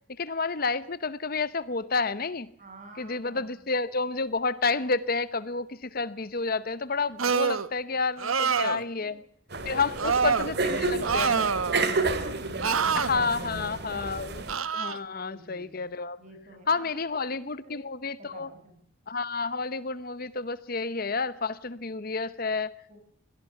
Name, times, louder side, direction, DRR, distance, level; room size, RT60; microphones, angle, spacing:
voice 1, 0.2-2.5 3.0-9.2 9.6-11.4 12.9-14.4 14.7-16.2 16.7-18.5 19.1-22.7, left 4 dB, 45° left, 16 dB, 0.9 m, -30 dB
voice 2, 2.6-3.6 8.6-9.2 9.7-14.2 15.1-15.8 16.2-17.9 18.2-18.8 22.9-23.0, right 1 dB, 35° right, 5 dB, 7.5 m, -49 dB
sound 1, 7.2-7.7 8.2-8.8 10.0-10.5 11.0-11.9 12.6-13.1 14.5-15.0, right 6 dB, 90° right, 1.2 m, -26 dB
sound 2, 9.5-14.6, right 3 dB, 55° right, 2.4 m, -30 dB
23.0 x 17.0 x 7.2 m, 0.64 s
head